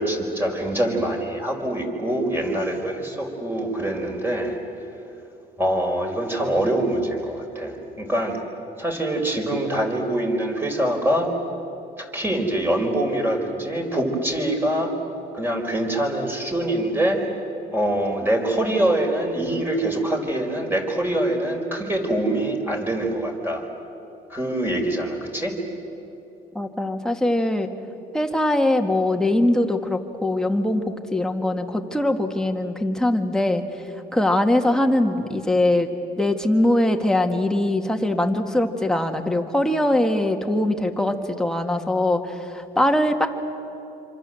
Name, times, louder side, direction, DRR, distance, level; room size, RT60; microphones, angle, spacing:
voice 1, 0.0-4.6 5.6-8.4 8.8-11.3 12.0-14.9 15.3-17.2 17.7-23.6 24.3-25.5, right 1 dB, 10° right, 2 dB, 5.0 m, -24 dB
voice 2, 26.5-27.7 28.1-33.6 34.1-35.9 36.2-43.3, left 1 dB, 5° left, 4 dB, 2.0 m, -22 dB
26.5 x 26.0 x 7.8 m, 2.9 s
cardioid pair, 110°, 17 cm